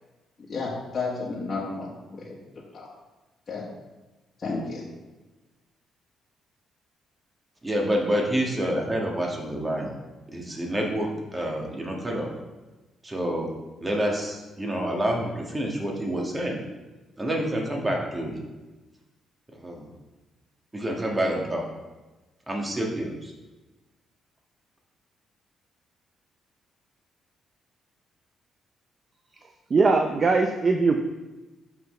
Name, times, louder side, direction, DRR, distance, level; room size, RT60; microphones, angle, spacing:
voice 1, 0.5-2.4 2.7-2.9 3.5-3.6 4.4-4.8, left 3 dB, 40° left, -6 dB, 1.5 m, -32 dB
voice 2, 7.6-9.9 10.3-12.3 13.0-13.5 13.8-16.6 17.2-18.4 19.6-19.9 20.7-21.6 22.5-23.3, right 1 dB, 20° right, 0 dB, 1.5 m, -28 dB
voice 3, 29.7-31.0, right 4 dB, 40° right, 5 dB, 0.5 m, -20 dB
5.8 x 5.7 x 4.3 m, 1.2 s
cardioid pair, 90°, 0 cm